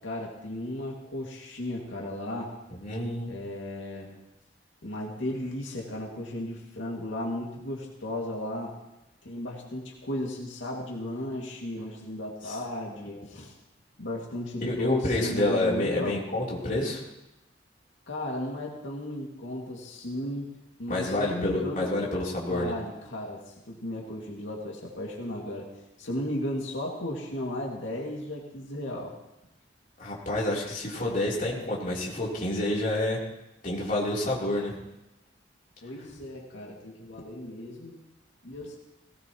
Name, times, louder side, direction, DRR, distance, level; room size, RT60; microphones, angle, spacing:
voice 1, 0.0-2.5 3.3-4.2 4.8-8.8 9.2-13.5 14.0-16.2 18.1-21.9 22.5-25.7 26.0-29.1 35.8-38.0 38.4-38.8, left 1 dB, 90° left, -2 dB, 2.4 m, -35 dB
voice 2, 2.8-3.3 12.4-12.6 13.1-13.2 14.7-17.0 20.9-22.7 30.0-33.2 33.6-34.8, left 1 dB, 45° left, -5 dB, 3.6 m, -28 dB
18.0 x 18.0 x 3.1 m, 0.92 s
head